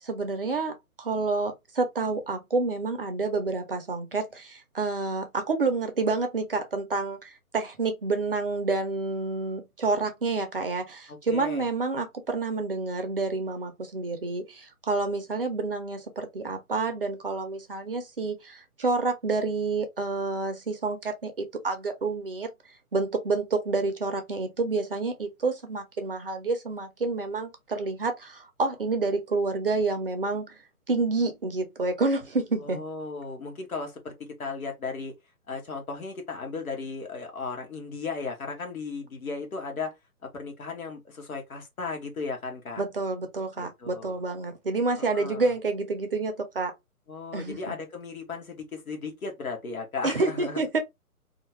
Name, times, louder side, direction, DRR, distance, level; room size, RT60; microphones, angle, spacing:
voice 1, 0.0-22.5 22.9-30.6 30.9-32.8 42.8-46.7 47.3-47.7 50.0-50.8, right 3 dB, 40° right, 0.6 m, -29 dB
voice 2, 11.1-11.7 32.6-34.1 34.4-35.1 35.5-39.9 40.3-42.8 43.6-44.2 45.1-45.5 47.1-50.7, left 4 dB, 65° left, 1.3 m, -36 dB
2.8 x 2.3 x 2.9 m
figure-of-eight pair, 140°, 45 cm